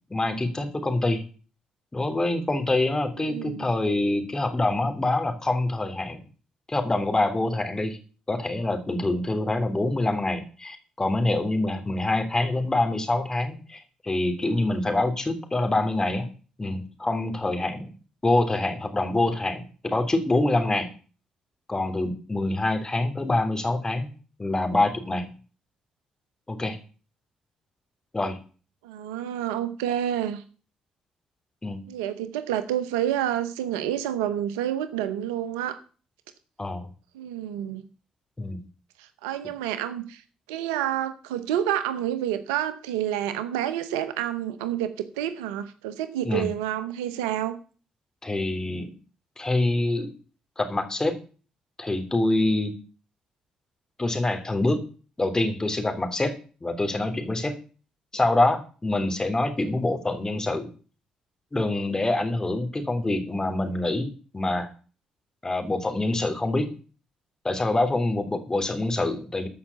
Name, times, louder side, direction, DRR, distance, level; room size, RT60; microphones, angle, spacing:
voice 1, 0.1-1.2 1.9-6.2 6.7-8.0 8.3-16.3 16.6-17.9 18.2-20.9 21.7-24.1 24.4-25.3 26.5-26.8 28.1-28.4 31.6-31.8 36.6-36.9 38.4-38.6 46.2-46.5 48.2-48.9 49.4-50.1 50.6-51.2 51.8-52.7 54.0-54.8 55.2-56.3 56.6-57.5 58.1-60.7 61.5-64.7 65.4-66.7 67.4-69.5, left 2 dB, 25° left, 6 dB, 3.1 m, -25 dB
voice 2, 3.2-3.6 28.8-30.4 31.9-35.8 37.1-37.8 39.0-40.2 40.5-47.6, right 11 dB, 85° right, 13 dB, 0.9 m, -29 dB
14.0 x 5.7 x 7.1 m, 0.39 s
hypercardioid pair, 45°, 3 cm